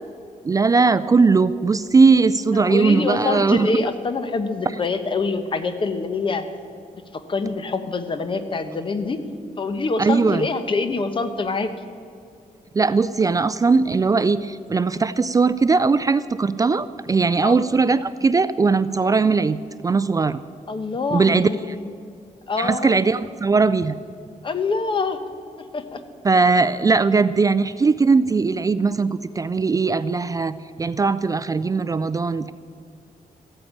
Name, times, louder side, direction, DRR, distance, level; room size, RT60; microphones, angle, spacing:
voice 1, 0.4-3.7 10.0-10.5 12.7-19.6 19.8-20.4 21.1-21.5 22.6-23.9 26.2-32.5, right 4 dB, 25° right, 15 dB, 0.3 m, -19 dB
voice 2, 2.5-6.4 7.1-9.2 9.6-11.7 17.4-17.6 20.7-22.0 22.5-22.9 24.4-25.2 25.6-26.0, left 3 dB, 35° left, 9 dB, 1.1 m, -25 dB
14.0 x 8.9 x 8.6 m, 2.4 s
wide cardioid pair, 125°, 14 cm